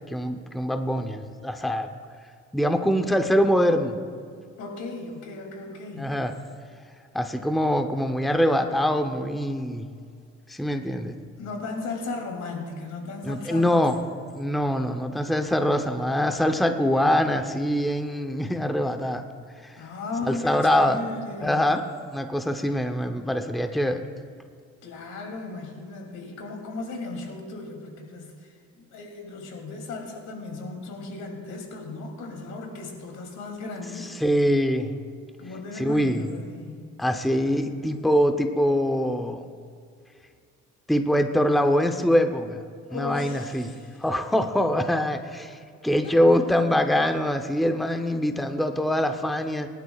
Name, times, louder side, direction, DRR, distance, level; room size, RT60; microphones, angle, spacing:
voice 1, 0.1-1.9 2.5-4.0 6.0-6.3 7.1-9.8 10.5-11.1 13.3-14.0 14.3-19.2 19.6-19.7 20.3-21.0 21.4-21.8 22.1-24.1 34.2-34.9 35.8-36.3 37.0-39.4 40.9-42.6 42.9-43.7 44.0-49.7, equal, ahead, 6 dB, 0.8 m, -23 dB
voice 2, 4.6-6.1 11.4-13.8 19.8-21.7 24.8-34.1 35.4-36.9 37.4-37.8 42.9-44.0 46.0-46.3, left 3 dB, 75° left, 1 dB, 3.0 m, -36 dB
22.5 x 11.5 x 2.4 m, 2.2 s
cardioid pair, 90°, 30 cm